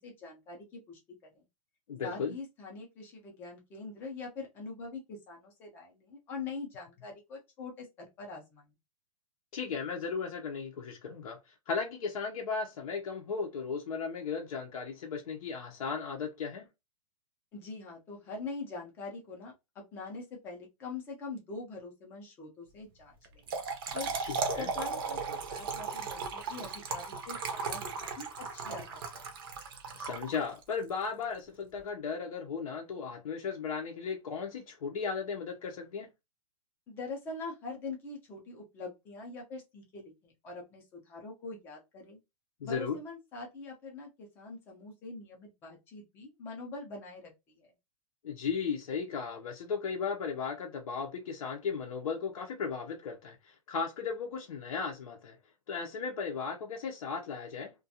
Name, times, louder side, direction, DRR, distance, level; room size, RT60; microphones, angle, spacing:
voice 1, 0.0-1.4 2.0-8.7 17.5-23.4 23.9-24.1 24.6-29.2 36.9-42.2 42.6-47.7, left 3 dB, 10° left, 0.5 m, -43 dB
voice 2, 1.9-2.4 9.5-16.7 24.2-24.7 29.9-36.1 42.6-43.0 48.2-55.4 55.7-57.7, left 5 dB, 70° left, 0.6 m, -36 dB
Trickle dribble / Fill (with liquid), 23.2-30.7, right 5 dB, 40° right, 0.5 m, -36 dB
2.4 x 2.2 x 2.7 m
hypercardioid pair, 175°, 19 cm